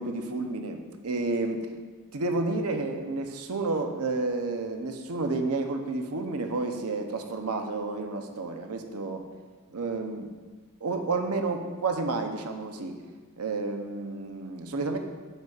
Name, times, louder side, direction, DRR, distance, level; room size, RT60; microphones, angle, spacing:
voice 1, 0.0-1.7 2.1-9.2 9.7-10.3 10.8-13.0 13.4-15.0, right 3 dB, 85° right, 5 dB, 0.7 m, -30 dB
9.0 x 7.9 x 2.4 m, 1.5 s
head